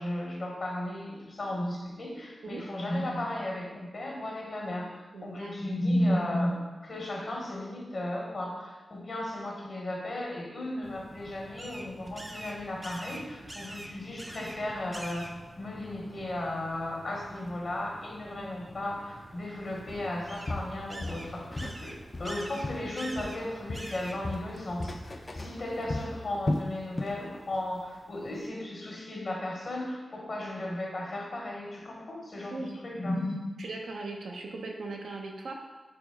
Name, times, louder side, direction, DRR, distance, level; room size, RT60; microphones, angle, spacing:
voice 1, 0.0-15.3 15.6-33.4, left 1 dB, 65° left, -2 dB, 0.9 m, -35 dB
voice 2, 5.1-5.6 32.5-32.8 33.6-35.6, right 3 dB, 85° right, 1 dB, 0.6 m, -39 dB
sound 1, 10.8-26.0, right 1 dB, 30° right, 0.4 m, -46 dB
Walk footsteps, 19.9-20.1 20.5-21.8 22.1-23.4 23.7-27.2 27.5-27.8 28.2-28.3, left 2 dB, 40° left, 0.3 m, -35 dB
4.1 x 3.4 x 3.5 m, 1.2 s
cardioid pair, 55°, 0 cm